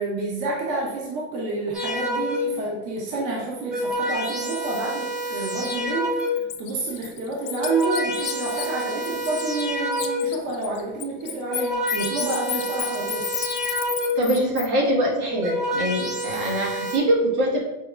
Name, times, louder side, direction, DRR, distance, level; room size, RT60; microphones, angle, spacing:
voice 1, 0.0-6.2 6.6-13.3, right 2 dB, 45° right, -3 dB, 0.9 m, -29 dB
sound 1, 1.7-2.7 3.4-6.6 7.3-10.5 11.2-14.4 15.1-17.0, equal, ahead, 0.3 m, -28 dB
Bird, 5.6-5.8 6.2-9.7 9.9-14.7, left 13 dB, 70° left, 0.6 m, -32 dB
voice 2, 14.1-17.6, right 1 dB, 75° right, -3 dB, 1.4 m, -23 dB
5.3 x 2.1 x 2.3 m, 1.0 s
supercardioid pair, 110°, 45 cm